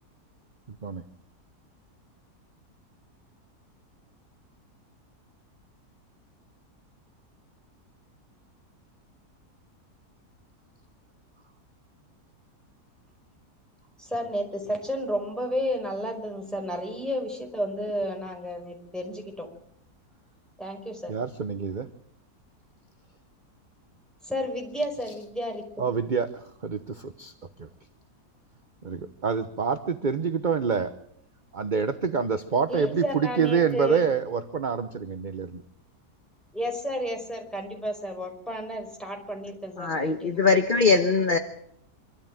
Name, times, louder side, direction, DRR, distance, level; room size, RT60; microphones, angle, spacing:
voice 1, 0.7-1.0 21.1-21.9 25.1-25.2 25.8-27.7 28.8-30.9 31.5-35.6, right 6 dB, 35° right, 10 dB, 1.0 m, -27 dB
voice 2, 14.0-19.5 20.6-21.1 24.2-25.6 32.7-34.0 36.5-40.4, equal, ahead, 2 dB, 5.1 m, -32 dB
voice 3, 39.8-41.4, left 4 dB, 35° left, 7 dB, 1.3 m, -21 dB
25.0 x 13.0 x 9.0 m, 0.71 s
omnidirectional pair, 1.7 m